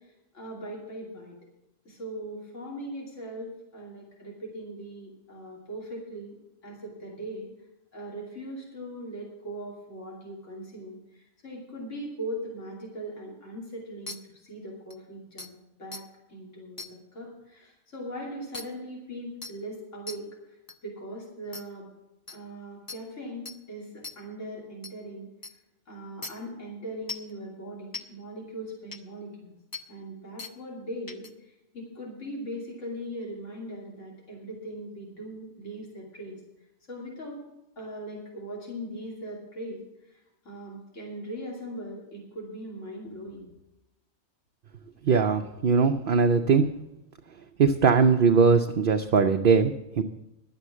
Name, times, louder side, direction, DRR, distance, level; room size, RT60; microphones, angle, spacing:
voice 1, 0.0-1.4 1.8-6.4 6.6-7.5 7.9-20.3 20.8-21.9 22.3-25.3 25.9-29.5 29.9-36.4 36.9-37.4 37.8-39.8 40.1-43.5, right 1 dB, 65° left, -3 dB, 3.1 m, -40 dB
sound 1, 14.1-14.2 14.9-15.0 15.4-15.5 15.9-16.0 16.8-16.9 18.5-18.6 19.4-19.5 20.1-20.2 20.7-20.8 21.5-21.6 22.3-22.4 22.9-23.0 23.4-23.6 24.0-24.1 24.8-24.9 25.4-25.5 26.2-26.3 27.1-27.3 27.9-28.0 28.9-29.0 29.7-29.8 30.4-30.5 31.1-31.3, left 3 dB, 20° left, 0.6 m, -38 dB
voice 2, 45.1-46.7 47.6-50.0, right 5 dB, 55° right, 5 dB, 0.7 m, -21 dB
11.5 x 8.0 x 7.2 m, 0.92 s
omnidirectional pair, 1.4 m